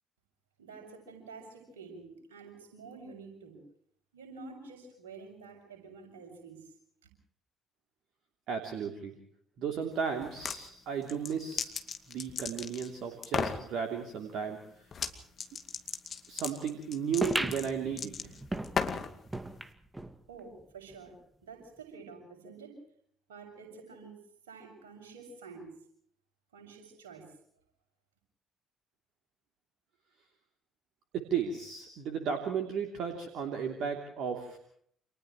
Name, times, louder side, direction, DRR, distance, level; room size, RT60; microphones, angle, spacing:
voice 1, 0.6-3.6 4.1-6.7 20.3-21.1 21.4-22.8 23.3-25.7 26.5-27.3, right 4 dB, 75° right, 4 dB, 7.0 m, -49 dB
voice 2, 8.5-9.1 9.6-11.7 12.1-14.8 16.3-18.4 31.1-34.6, right 7 dB, 60° right, 3 dB, 3.1 m, -34 dB
sound 1, 10.2-10.6 11.0-12.9 13.2-13.6 14.9-15.1 15.4-19.1, left 6 dB, 45° left, 2.4 m, -35 dB
sound 2, 17.2-20.2 20.6-20.7 20.9-21.0 21.8-21.9, right 2 dB, 15° right, 2.1 m, -36 dB
29.5 x 28.0 x 3.2 m, 0.64 s
figure-of-eight pair, 50°, 0 cm